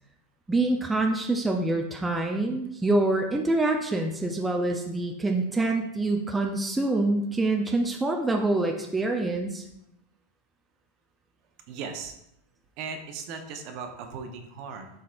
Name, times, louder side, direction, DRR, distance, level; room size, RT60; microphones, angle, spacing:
voice 1, 0.5-9.6, right 2 dB, 10° right, 2 dB, 0.6 m, -26 dB
voice 2, 11.7-12.1 12.8-14.9, right 5 dB, 50° right, 4 dB, 1.0 m, -37 dB
11.5 x 3.9 x 2.6 m, 0.81 s
supercardioid pair, 140°, 0 cm